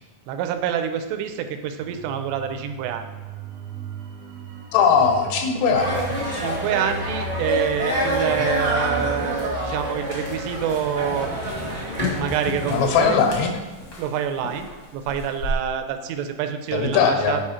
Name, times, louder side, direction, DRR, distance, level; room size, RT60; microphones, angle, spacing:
voice 1, 0.3-3.1 6.3-11.3 12.1-13.2 14.0-17.4, right 8 dB, 85° right, 8 dB, 2.7 m, -27 dB
sound 1, 1.8-14.2 14.5-14.6, right 2 dB, 70° right, 2.5 m, -38 dB
voice 2, 4.7-6.2 12.7-13.6 16.7-17.4, left 6 dB, 85° left, 5 dB, 2.9 m, -20 dB
sound 2, 5.7-13.1, equal, 45° right, 0.4 m, -27 dB
sound 3, 9.8-15.5, equal, 70° left, 1.1 m, -37 dB
8.2 x 4.8 x 4.3 m, 1.2 s
omnidirectional pair, 4.7 m